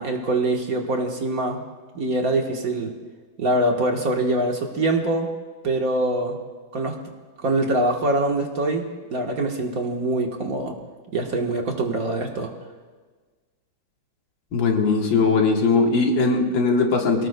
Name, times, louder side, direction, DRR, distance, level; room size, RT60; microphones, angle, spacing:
voice 1, 0.0-1.6 1.9-2.9 3.4-5.3 5.6-6.4 6.7-7.0 7.4-10.7 11.1-12.5, right 2 dB, 50° right, 2 dB, 1.6 m, -24 dB
voice 2, 14.5-17.3, left 4 dB, 75° left, 2 dB, 2.2 m, -20 dB
23.0 x 17.5 x 2.2 m, 1.4 s
omnidirectional pair, 2.1 m